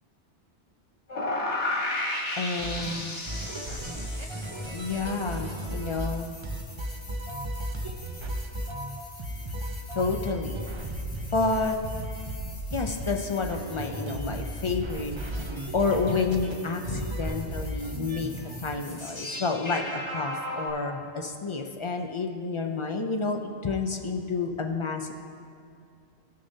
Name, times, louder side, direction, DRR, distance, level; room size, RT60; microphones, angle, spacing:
sound 1, 1.1-20.7, left 2 dB, 80° left, 1.7 m, -38 dB
voice 1, 2.4-3.2 4.7-6.3 10.0-10.6 11.3-11.8 12.7-15.5 15.7-18.3 18.6-25.1, left 4 dB, 45° left, 4 dB, 0.4 m, -29 dB
sound 2, 2.6-6.2 6.4-18.6, right 1 dB, 30° right, 0.6 m, -35 dB
15.5 x 6.5 x 2.7 m, 2.4 s
omnidirectional pair, 1.2 m